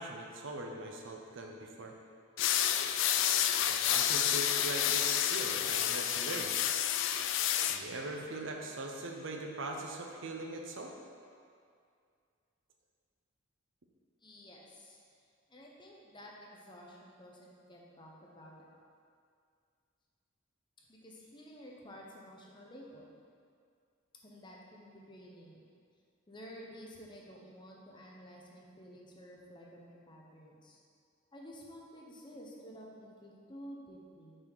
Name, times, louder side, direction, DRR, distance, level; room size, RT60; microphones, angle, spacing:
voice 1, 0.0-1.9 3.7-6.5 7.7-10.9, right 2 dB, 65° right, 2 dB, 0.7 m, -41 dB
sound 1, 2.4-7.8, left 10 dB, 65° left, 0.3 m, -30 dB
voice 2, 14.2-15.0 15.5-18.8 20.9-23.1 24.2-25.7 26.3-30.8 31.3-34.4, equal, 25° left, -2 dB, 0.9 m, -52 dB
6.3 x 4.2 x 4.6 m, 2.3 s
head